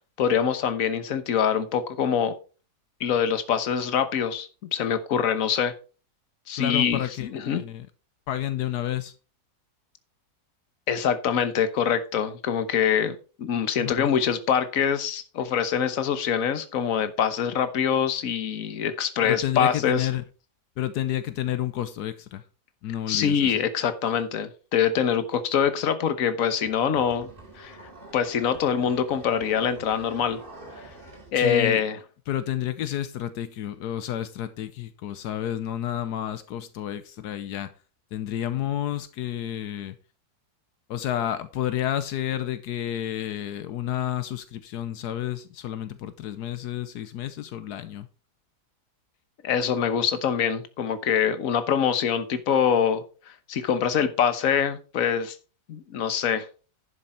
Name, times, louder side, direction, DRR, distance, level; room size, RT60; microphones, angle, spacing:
voice 1, 0.0-2.3 3.0-5.7 6.5-7.6 10.9-20.1 23.1-27.3 27.6-27.8 28.1-30.4 31.3-32.0 49.4-53.0 53.5-55.4 55.7-56.5, left 8 dB, 60° left, 1.4 m, -24 dB
voice 2, 6.6-7.9 8.3-9.1 13.8-14.1 19.2-20.2 20.8-22.4 22.8-23.6 31.4-31.8 32.3-37.7 38.1-39.9 40.9-48.1, left 11 dB, 80° left, 1.3 m, -30 dB
sound 1, 26.7-31.4, right 1 dB, 35° right, 2.5 m, -45 dB
11.0 x 6.8 x 4.3 m
omnidirectional pair, 1.7 m